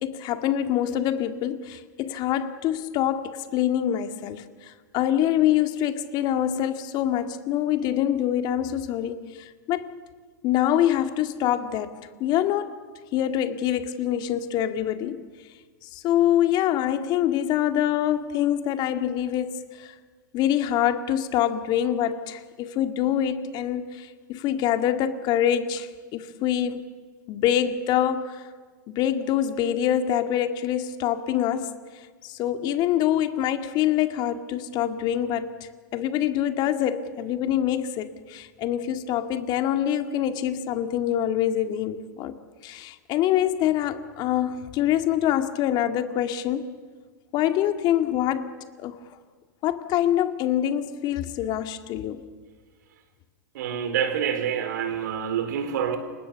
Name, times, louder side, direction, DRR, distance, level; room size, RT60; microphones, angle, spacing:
voice 1, 0.0-9.9 10.4-11.9 12.2-12.8 13.1-15.2 15.9-19.9 20.3-26.8 27.3-28.4 28.9-31.7 32.2-35.5 35.9-42.3 42.6-46.7 47.3-48.5 48.8-49.0 49.6-52.2, left 11 dB, 45° left, 2.0 m, -25 dB
voice 2, 53.5-56.0, right 8 dB, 65° right, 4.2 m, -27 dB
29.0 x 26.0 x 7.1 m
hypercardioid pair, 100°, 10 cm